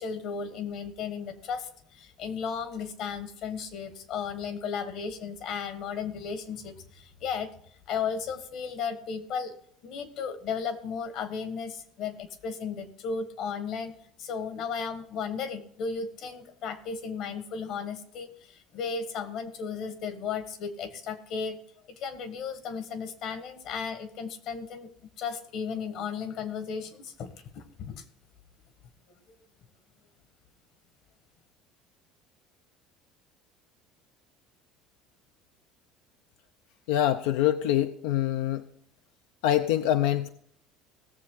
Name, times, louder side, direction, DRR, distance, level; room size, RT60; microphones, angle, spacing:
voice 1, 0.0-7.5 7.9-9.5 9.8-21.6 22.0-24.9 25.2-28.0, left 6 dB, 50° left, 11 dB, 1.4 m, -35 dB
voice 2, 36.9-38.7 39.4-40.3, left 12 dB, 85° left, 10 dB, 0.6 m, -25 dB
18.0 x 7.4 x 3.8 m, 0.66 s
cardioid pair, 165°, 0 cm